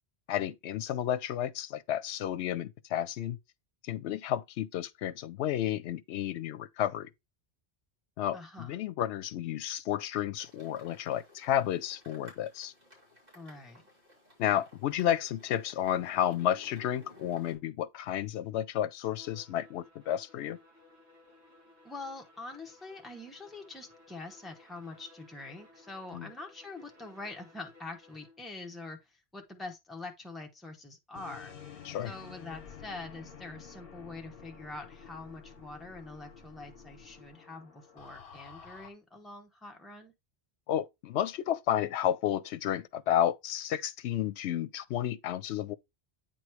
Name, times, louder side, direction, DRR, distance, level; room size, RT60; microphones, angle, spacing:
voice 1, 0.3-3.4 3.8-7.1 8.2-12.7 14.4-20.6 26.1-26.3 31.8-32.1 40.7-45.7, left 11 dB, 85° left, 0.8 m, -31 dB
voice 2, 8.3-8.8 13.3-13.8 21.8-31.5 32.0-40.1, left 2 dB, ahead, 1.1 m, -45 dB
sound 1, 10.4-17.6, left 2 dB, 55° right, 3.7 m, -56 dB
Bowed string instrument, 19.0-28.5, left 2 dB, 80° right, 2.5 m, -59 dB
sound 2, 31.1-38.9, left 6 dB, 65° left, 1.1 m, -50 dB
8.9 x 3.1 x 4.5 m
omnidirectional pair, 1.1 m